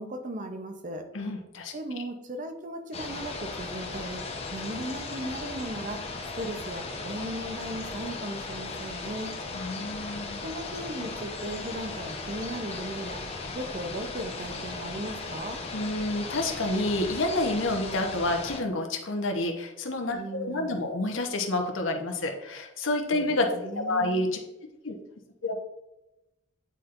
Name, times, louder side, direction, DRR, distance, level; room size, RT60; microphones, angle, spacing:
voice 1, 0.0-1.1 1.7-4.2 4.5-6.1 6.4-9.3 10.4-13.2 13.5-15.6 20.1-21.0 23.1-24.2, right 1 dB, 40° right, 6 dB, 0.7 m, -37 dB
voice 2, 1.1-1.7 9.5-10.4 15.7-23.5 23.9-24.4 24.8-25.0 25.4-25.6, left 2 dB, 85° left, 3 dB, 1.0 m, -29 dB
sound 1, 2.9-18.6, left 3 dB, 30° left, 0.8 m, -37 dB
9.1 x 4.3 x 2.5 m, 0.93 s
head